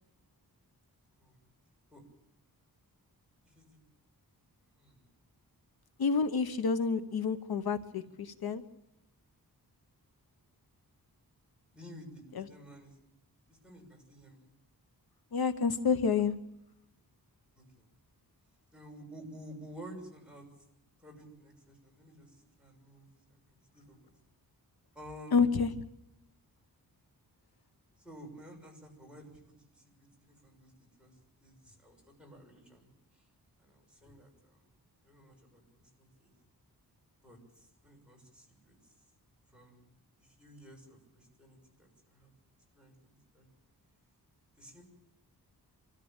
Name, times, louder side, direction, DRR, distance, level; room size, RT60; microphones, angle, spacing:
voice 1, 3.4-3.8 4.8-5.0 8.0-8.1 11.7-13.0 13.5-14.5 17.5-17.9 18.7-20.5 21.0-23.4 23.7-24.1 24.9-25.5 28.0-29.8 30.2-30.7 31.0-31.1 31.4-33.3 33.6-34.7 35.0-36.3 37.2-38.9 39.5-39.8 40.2-42.3 42.7-43.5 44.6-44.8, equal, 5° right, -1 dB, 6.4 m, -52 dB
voice 2, 6.0-8.6 12.3-12.5 15.3-16.3 25.3-25.7, left 5 dB, 70° left, 10 dB, 1.0 m, -29 dB
25.5 x 14.0 x 8.9 m, 0.88 s
wide cardioid pair, 140°, 38 cm